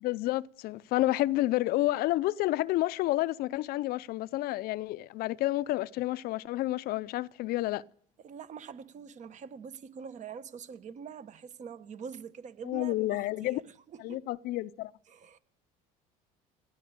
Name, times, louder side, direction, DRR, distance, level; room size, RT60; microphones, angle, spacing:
voice 1, 0.0-7.8 12.7-13.6 14.0-14.9, left 16 dB, 65° left, 0.5 m, -30 dB
voice 2, 8.2-14.2 15.1-15.4, right 7 dB, 45° right, 1.2 m, -45 dB
17.5 x 11.5 x 6.7 m
supercardioid pair, 85°, 17 cm